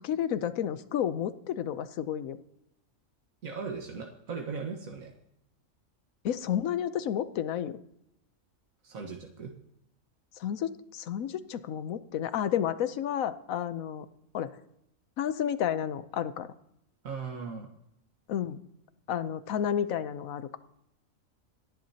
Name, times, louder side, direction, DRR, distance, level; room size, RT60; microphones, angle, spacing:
voice 1, 0.0-2.4 6.2-7.8 10.4-14.1 14.3-14.5 15.2-16.5 18.3-18.6 19.1-20.6, left 9 dB, 85° left, 13 dB, 1.2 m, -31 dB
voice 2, 3.4-5.1 8.8-9.5 17.0-17.7, right 5 dB, 85° right, 1 dB, 1.8 m, -38 dB
28.0 x 10.5 x 2.8 m, 0.82 s
omnidirectional pair, 1.4 m